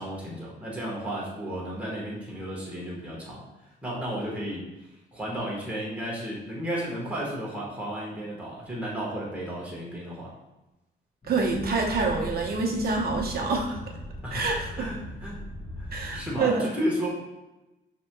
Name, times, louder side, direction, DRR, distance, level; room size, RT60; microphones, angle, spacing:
voice 1, 0.0-3.4 3.8-4.7 5.1-10.3 14.2-15.4 15.8-17.1, equal, 5° right, -5 dB, 1.2 m, -33 dB
sound 1, 11.2-16.4, equal, 25° left, 1.1 m, -39 dB
voice 2, 11.3-13.8 14.3-14.9 15.9-16.7, right 3 dB, 50° right, 1 dB, 0.9 m, -27 dB
6.0 x 2.9 x 2.2 m, 1.0 s
cardioid pair, 90°, 20 cm